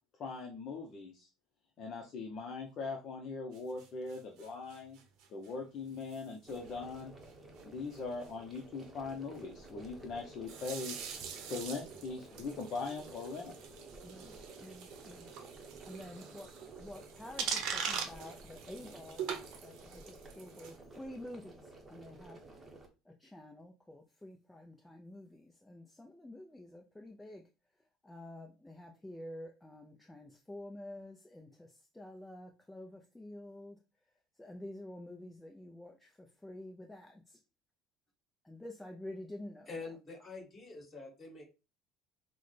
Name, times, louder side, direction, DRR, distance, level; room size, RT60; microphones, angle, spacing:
voice 1, 0.2-1.3 1.8-5.0 5.3-7.1 7.6-10.9 11.5-13.6, left 4 dB, 45° left, 1 dB, 0.7 m, -41 dB
sound 1, 3.5-5.5 6.0-6.2 6.5-6.7 7.0-7.1 7.3-7.4 7.6-7.7 7.9-8.3 10.4-20.8, right 7 dB, 65° right, 0.8 m, -43 dB
sound 2, 6.5-22.9, right 2 dB, 20° right, 0.9 m, -53 dB
voice 2, 14.0-15.3 15.8-16.5 16.8-22.4 23.1-27.4 28.0-33.8 34.4-37.4 38.4-39.7, left 1 dB, 5° left, 2 dB, 0.4 m, -49 dB
voice 3, 39.7-41.4, left 3 dB, 25° left, -1 dB, 2.5 m, -46 dB
6.1 x 2.2 x 3.2 m, 0.29 s
cardioid pair, 140°, 0 cm